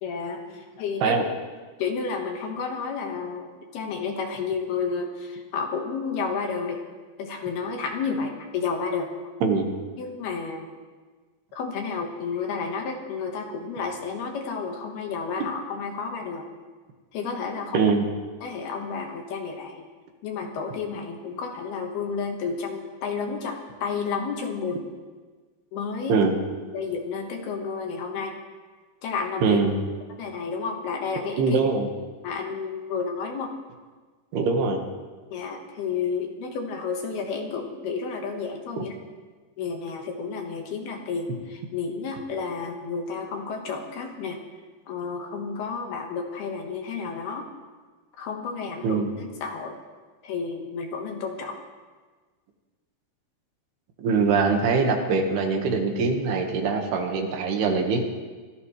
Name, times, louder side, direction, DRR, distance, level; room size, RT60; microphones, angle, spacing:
voice 1, 0.0-1.2 1.8-6.8 7.2-9.1 10.0-10.7 11.5-16.5 17.1-17.8 18.4-19.9 20.2-24.8 25.7-26.2 26.7-28.3 29.0-29.6 30.2-31.6 32.2-33.5 35.3-39.0 39.6-44.4 44.9-47.5 48.2-49.8 50.2-51.6, left 5 dB, 65° left, 2 dB, 2.9 m, -31 dB
voice 2, 9.4-9.7 17.7-18.1 26.1-26.4 29.4-29.8 31.4-31.9 34.3-34.8 48.8-49.1 54.0-58.1, right 4 dB, 65° right, 3 dB, 3.1 m, -23 dB
25.0 x 16.5 x 3.2 m, 1.4 s
omnidirectional pair, 5.8 m